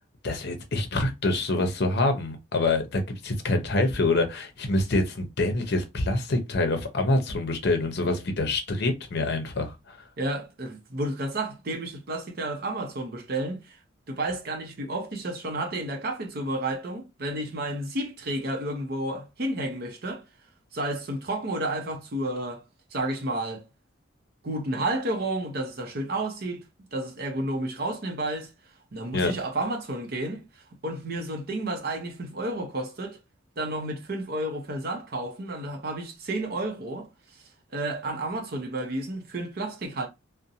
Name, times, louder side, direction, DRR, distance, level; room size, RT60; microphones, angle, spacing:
voice 1, 0.2-10.0 29.1-29.3, left 2 dB, 55° left, 0.6 m, -26 dB
voice 2, 10.2-13.8 14.1-20.2 20.7-22.6 22.9-23.6 24.4-26.6 26.9-28.5 28.9-33.2 33.6-37.4 37.7-40.1, right 1 dB, 50° right, 0.6 m, -31 dB
2.5 x 2.1 x 2.6 m
head